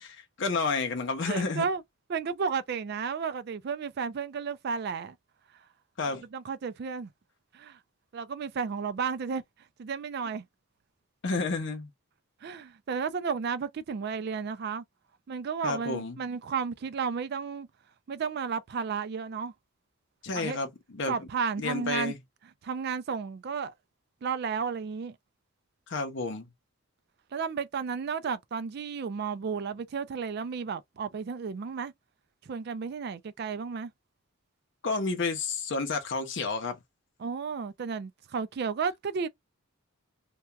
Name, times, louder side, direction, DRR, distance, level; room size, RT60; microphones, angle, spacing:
voice 1, 0.4-1.7 6.0-6.2 11.2-11.9 15.6-16.2 20.2-20.7 20.9-21.1 21.6-22.2 25.9-26.5 34.8-36.8, left 3 dB, 55° left, 0.6 m, -30 dB
voice 2, 1.2-1.8 2.1-5.2 6.1-7.1 7.5-7.8 8.1-9.4 9.8-10.4 12.4-14.8 15.3-17.7 18.1-19.5 20.3-20.6 21.1-22.1 22.6-23.7 24.2-25.2 27.3-31.9 32.4-33.9 37.2-39.3, right 6 dB, 50° right, 0.3 m, -33 dB
2.8 x 2.3 x 2.2 m
head